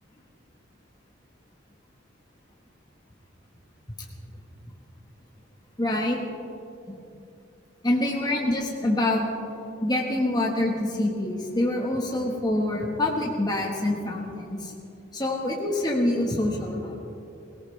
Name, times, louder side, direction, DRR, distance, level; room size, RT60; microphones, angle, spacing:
voice 1, 5.8-6.2 7.8-9.2 9.8-14.7 15.1-17.0, left 1 dB, 20° left, -1 dB, 1.5 m, -26 dB
23.0 x 18.0 x 3.4 m, 2.7 s
head